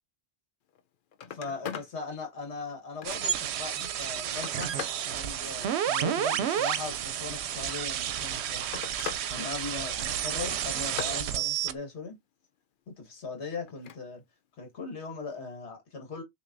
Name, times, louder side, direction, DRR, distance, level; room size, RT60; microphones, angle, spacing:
Telephone, 0.7-0.8 1.1-1.9 2.4-3.5 4.0-5.1 6.3-7.1 8.1-9.3 9.6-10.1 10.5-11.2 13.7-14.0 15.4-15.5, left 8 dB, 55° left, 0.6 m, -41 dB
voice 1, 1.3-4.7 5.0-8.8 9.3-12.2 13.0-14.2 14.6-16.2, left 4 dB, 75° left, 1.6 m, -39 dB
sound 1, 3.0-11.7, right 10 dB, 75° right, 0.8 m, -31 dB
6.0 x 2.8 x 2.5 m
omnidirectional pair, 1.2 m